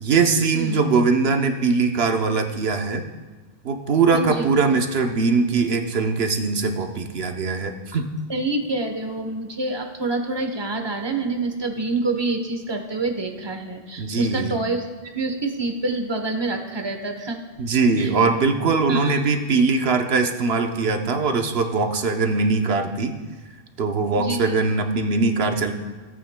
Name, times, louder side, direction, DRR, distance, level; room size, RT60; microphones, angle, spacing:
voice 1, 0.0-3.0 3.6-8.1 14.0-14.6 17.6-23.1 23.8-25.7, right 4 dB, 70° right, 5 dB, 1.0 m, -21 dB
voice 2, 4.1-4.5 8.3-14.8 15.1-17.4 18.0-18.1 18.9-19.2 24.2-24.6, right 3 dB, 25° right, 4 dB, 0.9 m, -27 dB
17.0 x 8.7 x 2.2 m, 1.4 s
omnidirectional pair, 1.1 m